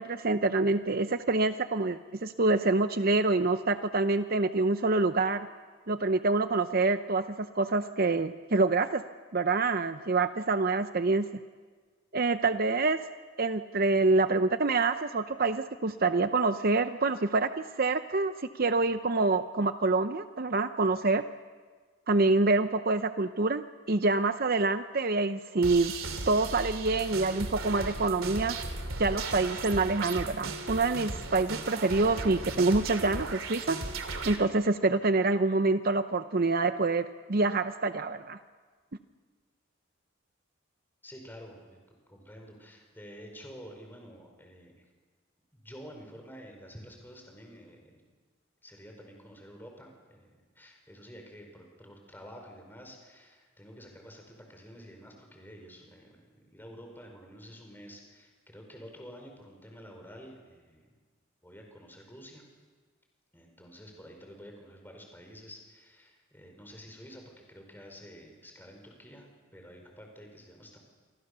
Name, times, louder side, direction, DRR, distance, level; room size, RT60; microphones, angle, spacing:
voice 1, 0.0-5.5 5.9-9.0 9.3-11.3 12.1-13.0 13.4-21.2 22.1-25.9 26.3-28.6 29.0-33.8 34.3-38.4, right 3 dB, 45° right, 10 dB, 0.7 m, -26 dB
sound 1, 25.6-34.4, right 3 dB, 80° right, 2.8 m, -36 dB
voice 2, 41.0-44.8 45.5-48.0 48.6-60.9 61.4-62.4 63.3-70.8, equal, 10° left, 2 dB, 5.1 m, -49 dB
28.0 x 25.0 x 6.8 m, 1.5 s
head